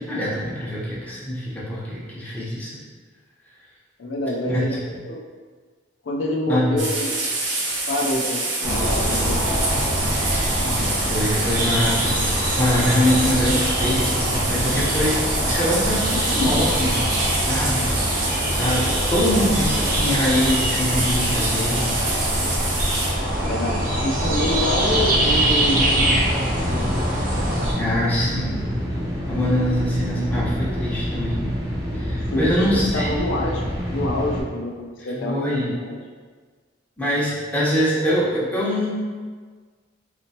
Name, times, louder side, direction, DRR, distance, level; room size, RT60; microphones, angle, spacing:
voice 1, 0.0-2.8 4.5-4.8 6.5-6.7 10.6-17.0 17.4-17.9 18.5-18.8 19.1-21.9 27.8-28.7 29.3-31.5 31.9-33.1 35.0-35.7 37.0-38.9, equal, 10° left, -8 dB, 1.0 m, -24 dB
voice 2, 4.0-5.2 6.0-7.1 7.9-9.6 23.4-26.4 26.7-27.0 32.3-36.0, left 1 dB, 80° left, -1 dB, 0.5 m, -27 dB
sound 1, 6.8-23.1, right 2 dB, 80° right, 0.8 m, -26 dB
sound 2, 8.6-27.7, right 1 dB, 50° right, 0.9 m, -23 dB
sound 3, 24.6-34.4, equal, 20° right, 0.6 m, -27 dB
4.0 x 2.9 x 2.9 m, 1.5 s
head